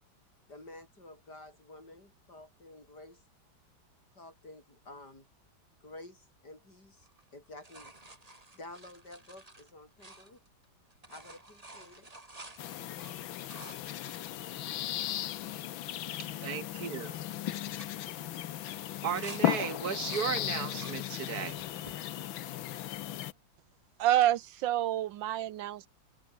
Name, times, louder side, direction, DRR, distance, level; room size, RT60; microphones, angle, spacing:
voice 1, 0.5-3.2 4.1-5.3 5.8-8.0 8.5-10.4 11.1-12.1 16.1-16.5, left 2 dB, 55° left, 8.7 m, -51 dB
sound 1, 7.0-10.6 10.9-15.3 15.8-15.9 16.1-16.6 16.9-17.2 17.6-19.4 19.8-21.0 21.5-22.0 22.6-23.4 25.0-25.1, right 2 dB, 20° right, 2.7 m, -52 dB
sound 2, 12.6-23.3, left 12 dB, 85° left, 1.7 m, -36 dB
voice 2, 16.2-17.2 19.0-21.6, right 8 dB, 55° right, 2.3 m, -35 dB
voice 3, 24.0-25.9, right 12 dB, 75° right, 1.4 m, -28 dB
omnidirectional pair, 2.1 m